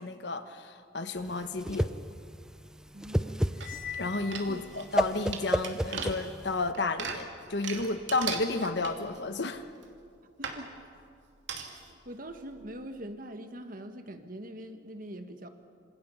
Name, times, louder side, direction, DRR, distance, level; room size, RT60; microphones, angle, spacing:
voice 1, 0.0-1.9 4.0-9.6, left 3 dB, 65° left, 9 dB, 1.3 m, -32 dB
Whoosh swoosh swish, 1.2-6.7, equal, 5° right, 0.5 m, -31 dB
voice 2, 2.9-3.6 4.5-4.6 10.4-10.7 11.9-15.5, right 1 dB, 50° right, 7 dB, 1.7 m, -43 dB
Cymbal, 3.6-5.0, left 7 dB, 45° left, 0.9 m, -42 dB
sound 1, 3.6-4.0 4.3-9.3 9.8-9.9 10.4-10.6 11.5-11.9 12.3-12.4 12.6-12.7, right 6 dB, 80° right, 2.6 m, -39 dB
28.0 x 26.5 x 5.7 m, 2.3 s
head